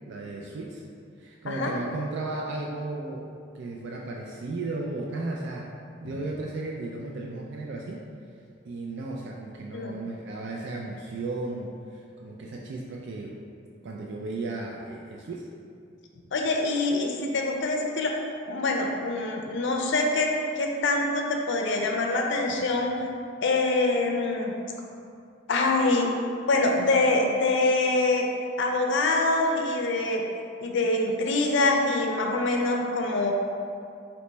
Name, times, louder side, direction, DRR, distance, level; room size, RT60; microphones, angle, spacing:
voice 1, 0.1-0.8 1.2-3.3 3.5-5.7 6.0-8.1 8.6-13.4 13.8-15.5, right 2 dB, 60° right, -1 dB, 0.3 m, -35 dB
voice 2, 16.3-18.2 18.5-22.9 23.4-24.5 25.5-26.1 26.5-28.2 28.6-30.2 30.6-33.3, left 2 dB, 65° left, 2 dB, 0.5 m, -25 dB
3.3 x 2.9 x 4.1 m, 2.4 s
head